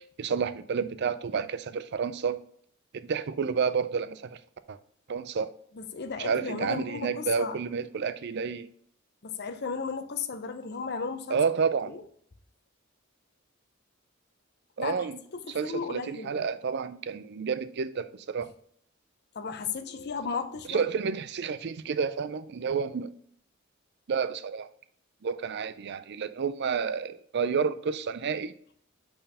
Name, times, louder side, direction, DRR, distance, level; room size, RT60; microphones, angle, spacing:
voice 1, 0.0-2.4 2.9-4.4 4.7-4.8 5.1-5.5 6.2-8.7 11.3-11.9 14.8-15.2 15.5-18.5 20.7-23.1 24.1-24.7 25.2-28.5, right 6 dB, 55° right, 0.4 m, -30 dB
voice 2, 5.7-7.6 9.2-11.4 11.8-12.0 14.8-15.1 15.3-16.5 19.3-20.9, left 5 dB, 50° left, 0.7 m, -35 dB
5.5 x 4.5 x 5.4 m
head